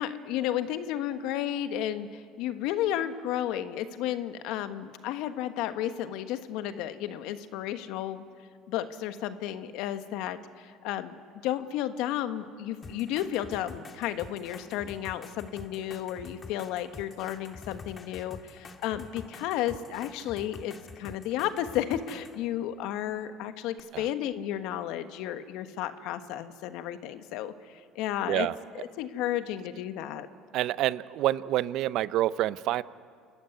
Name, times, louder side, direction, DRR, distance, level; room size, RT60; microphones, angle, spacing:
voice 1, 0.0-8.2 8.7-28.5 28.7-30.3, left 11 dB, 70° left, 10 dB, 1.3 m, -33 dB
sound 1, 12.8-22.4 23.8-23.9, left 4 dB, 35° left, 2.0 m, -47 dB
voice 2, 30.5-32.8, right 14 dB, 65° right, 18 dB, 0.6 m, -27 dB
28.5 x 14.5 x 9.7 m, 2.2 s
supercardioid pair, 80°, 0 cm